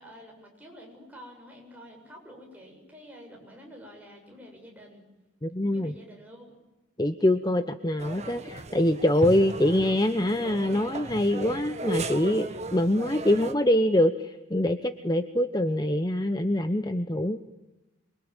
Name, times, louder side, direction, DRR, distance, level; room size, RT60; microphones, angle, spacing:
voice 1, 0.0-5.1 5.6-6.6, equal, 10° right, 0 dB, 7.7 m, -48 dB
voice 2, 5.4-5.9 7.0-17.4, left 1 dB, 20° left, 9 dB, 0.9 m, -24 dB
sound 1, 8.0-13.5, right 2 dB, 35° right, 1.5 m, -36 dB
27.0 x 24.0 x 9.0 m, 1.0 s
head